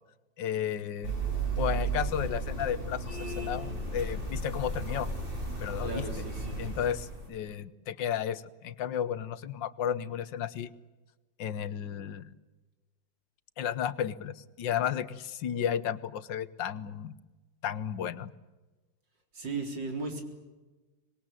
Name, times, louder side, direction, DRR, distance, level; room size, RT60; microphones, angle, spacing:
voice 1, 0.4-1.1 1.6-5.1 5.6-6.1 6.6-10.7 11.4-12.3 13.6-17.1 17.6-18.3, left 9 dB, 85° left, 15 dB, 1.7 m, -33 dB
sound 1, 1.0-7.3, right 3 dB, 30° right, 6.4 m, -34 dB
voice 2, 5.8-6.6 19.3-20.2, right 3 dB, 85° right, 4 dB, 4.7 m, -36 dB
25.5 x 21.0 x 9.0 m, 1.2 s
omnidirectional pair, 1.9 m